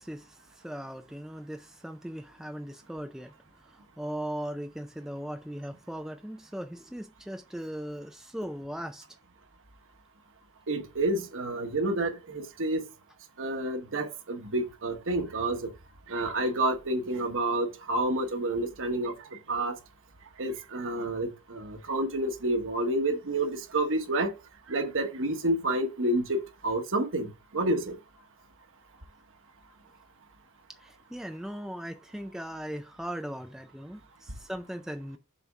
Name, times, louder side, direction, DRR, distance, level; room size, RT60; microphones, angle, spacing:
voice 1, 0.0-9.1 30.7-35.2, equal, ahead, 0.4 m, -39 dB
voice 2, 10.7-12.8 13.4-15.7 16.1-19.1 19.5-19.7 20.4-24.3 24.7-28.0, right 1 dB, 60° right, 1.2 m, -29 dB
6.9 x 4.2 x 3.5 m
head